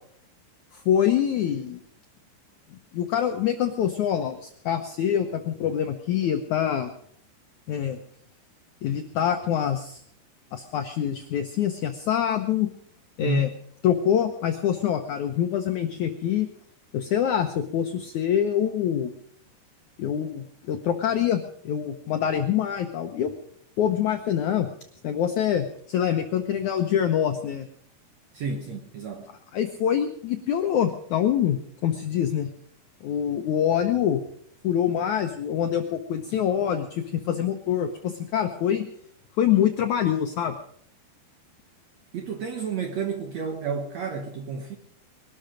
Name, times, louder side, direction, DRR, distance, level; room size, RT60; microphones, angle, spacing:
voice 1, 0.7-1.8 2.9-6.9 7.7-8.0 8.8-10.0 10.5-12.7 13.2-13.5 13.8-16.5 16.9-19.1 20.0-23.3 23.8-24.7 25.0-27.7 29.5-32.5 33.0-34.2 34.6-38.8 39.4-40.6, left 9 dB, 75° left, 5 dB, 1.7 m, -25 dB
voice 2, 13.2-13.6 28.3-29.3 42.1-44.8, right 4 dB, 65° right, 4 dB, 1.8 m, -30 dB
21.5 x 12.5 x 5.1 m, 0.64 s
omnidirectional pair, 4.7 m